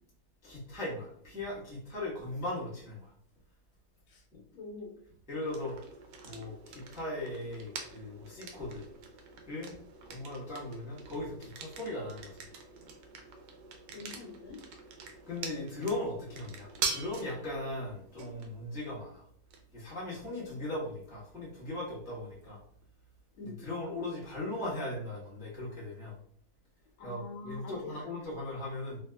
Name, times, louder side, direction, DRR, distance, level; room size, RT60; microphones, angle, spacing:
voice 1, 0.4-3.1 4.3-4.4 5.3-5.8 6.2-8.9 9.5-9.7 10.0-12.5 15.3-19.3 19.7-22.6 23.4-26.2 27.0-29.0, left 1 dB, 5° right, -7 dB, 0.4 m, -38 dB
voice 2, 4.5-5.0 13.9-14.6 23.4-23.6 27.0-27.7, left 3 dB, 75° left, 2 dB, 1.3 m, -45 dB
sound 1, 5.5-23.2, right 5 dB, 75° right, 1.1 m, -45 dB
3.3 x 2.8 x 2.2 m, 0.64 s
omnidirectional pair, 2.3 m